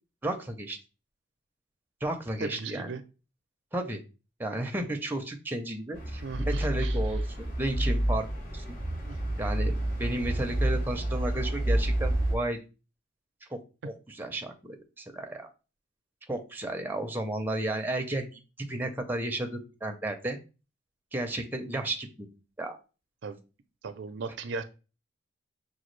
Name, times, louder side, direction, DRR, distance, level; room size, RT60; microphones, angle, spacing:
voice 1, 0.2-0.8 2.0-2.9 3.7-4.0 4.4-8.3 8.5-8.8 9.4-9.7 10.0-12.6 13.5-13.6 13.8-15.5 16.3-20.4 21.1-22.3 22.6-22.8, right 1 dB, 10° right, 4 dB, 0.5 m, -33 dB
voice 2, 2.4-3.0 6.2-7.0 9.1-9.2 23.2-23.4 23.8-24.6, right 4 dB, 70° right, 10 dB, 0.4 m, -37 dB
sound 1, 5.9-12.4, right 1 dB, 50° left, 1.8 m, -29 dB
5.9 x 2.3 x 3.1 m, 0.32 s
head